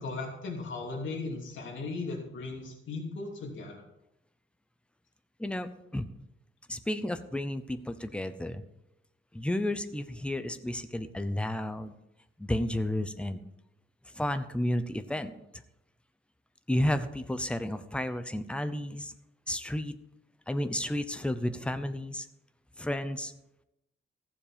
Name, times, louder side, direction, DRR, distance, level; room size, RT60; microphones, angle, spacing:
voice 1, 0.0-3.8, left 3 dB, 70° left, 0 dB, 2.9 m, -37 dB
voice 2, 5.4-6.1 6.7-8.6 9.3-11.9 12.4-13.4 14.1-15.3 16.7-19.1 19.5-20.0 20.5-22.3 22.8-23.3, left 1 dB, 5° left, 10 dB, 0.7 m, -32 dB
14.5 x 7.4 x 5.1 m, 0.86 s
wide cardioid pair, 150°, 21 cm